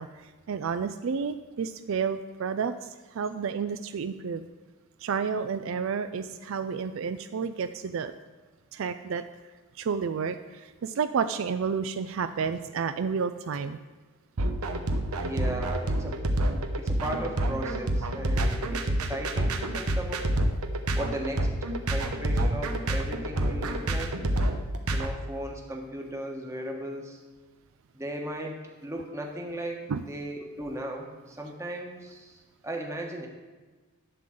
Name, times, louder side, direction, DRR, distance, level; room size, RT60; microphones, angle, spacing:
voice 1, 0.0-4.4 5.0-8.1 8.7-9.2 9.8-13.8 29.9-30.0, right 6 dB, 60° right, 10 dB, 0.4 m, -31 dB
sound 1, 14.4-25.1, right 1 dB, 85° right, 0.9 m, -27 dB
voice 2, 15.2-16.2 16.8-20.3 20.9-21.5 21.9-24.1 24.9-27.2 27.9-33.3, right 1 dB, 15° right, 1 dB, 1.2 m, -36 dB
11.0 x 3.9 x 7.6 m, 1.3 s
head